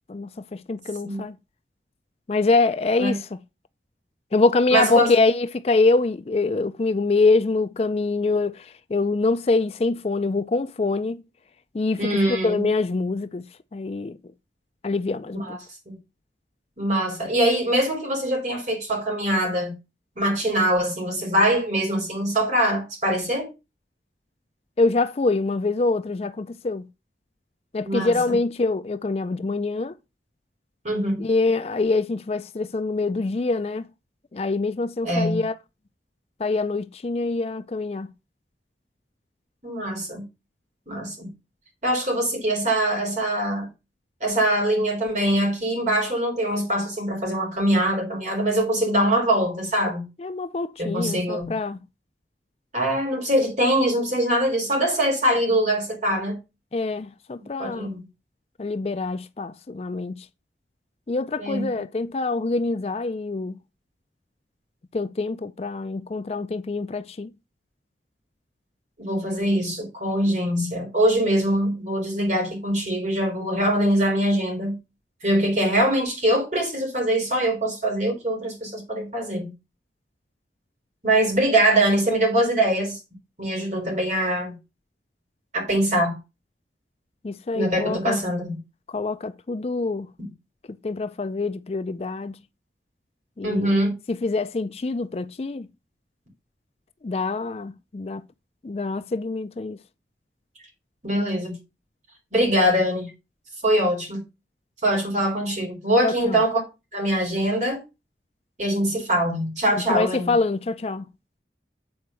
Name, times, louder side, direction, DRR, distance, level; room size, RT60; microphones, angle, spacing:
voice 1, 0.1-1.4 2.3-3.4 4.3-11.2 11.7-13.5 13.7-14.2 14.8-15.6 24.8-26.9 27.7-29.9 31.2-33.9 34.3-35.5 36.4-38.1 50.2-51.8 56.7-58.0 58.6-60.3 61.1-63.6 64.9-67.3 87.2-88.2 88.9-90.1 90.8-92.4 93.4-93.8 94.1-95.7 97.0-98.3 98.6-99.8 106.0-106.4 109.7-111.1, left 3 dB, 35° left, 0.4 m, -25 dB
voice 2, 4.7-5.2 12.0-12.6 15.3-15.6 15.9-16.0 16.8-19.7 20.2-23.5 27.8-28.1 30.8-31.2 35.0-35.4 39.6-40.2 40.9-41.3 41.8-43.7 44.2-50.0 50.8-51.5 52.7-56.4 57.6-58.0 61.4-61.7 69.0-74.8 75.2-79.5 81.0-83.0 83.4-84.5 85.5-86.2 87.5-88.5 93.4-93.9 101.0-101.5 102.3-103.1 103.6-104.2 104.8-106.6 106.9-107.8 108.6-110.3, right 1 dB, 40° right, 3.8 m, -23 dB
8.5 x 4.4 x 6.2 m
head